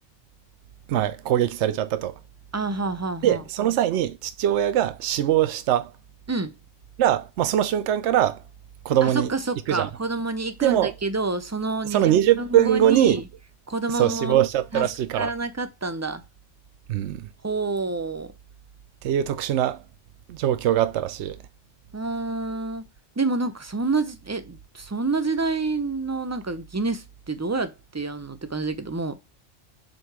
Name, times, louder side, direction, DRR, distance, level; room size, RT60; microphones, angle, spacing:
voice 1, 0.9-2.2 3.2-5.9 7.0-8.4 8.8-9.3 9.7-9.9 10.6-10.9 11.9-13.2 13.9-15.3 16.9-17.3 19.0-19.8 20.3-21.4, right 11 dB, 80° right, 0.9 m, -22 dB
voice 2, 2.5-3.4 6.3-6.5 9.0-12.1 12.4-13.2 13.7-14.4 14.7-14.9 15.2-16.2 17.4-18.3 21.9-22.8 23.2-29.2, right 3 dB, 20° right, 0.4 m, -28 dB
7.7 x 2.8 x 4.7 m
omnidirectional pair, 1.2 m